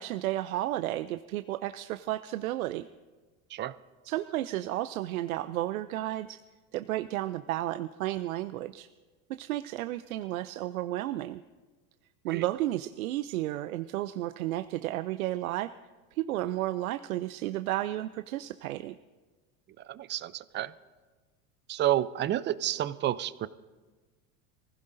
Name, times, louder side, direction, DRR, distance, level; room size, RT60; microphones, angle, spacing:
voice 1, 0.0-2.9 4.0-6.4 6.7-8.9 9.4-11.4 12.2-15.7 16.1-19.0, right 15 dB, 85° right, 11 dB, 0.5 m, -32 dB
voice 2, 19.8-20.7 21.7-23.5, right 12 dB, 30° right, 17 dB, 0.4 m, -30 dB
23.5 x 15.5 x 2.6 m, 1.3 s
hypercardioid pair, 95°, 41 cm